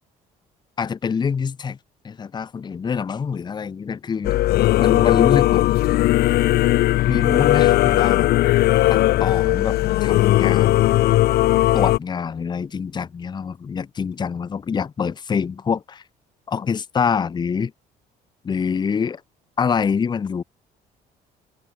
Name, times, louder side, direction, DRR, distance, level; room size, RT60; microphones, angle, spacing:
voice 1, 0.8-1.8 2.0-4.4 4.8-5.7 7.1-8.3 8.9-10.9 11.7-16.0 16.5-17.7 18.4-19.2 19.6-20.4, left 6 dB, 25° left, 0.6 m, -25 dB
Singing / Musical instrument, 4.2-12.0, left 16 dB, 70° left, 0.7 m, -17 dB
open air
cardioid pair, 110°, 17 cm